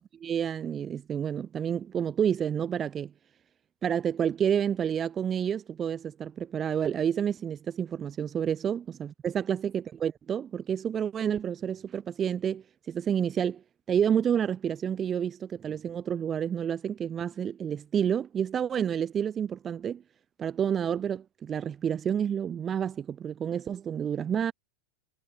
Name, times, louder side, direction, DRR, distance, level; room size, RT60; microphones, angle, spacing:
voice 1, 0.2-3.1 3.8-13.6 13.9-20.0 20.4-24.5, right 8 dB, 25° right, 0.7 m, -29 dB
figure-of-eight pair, 90°, 0 cm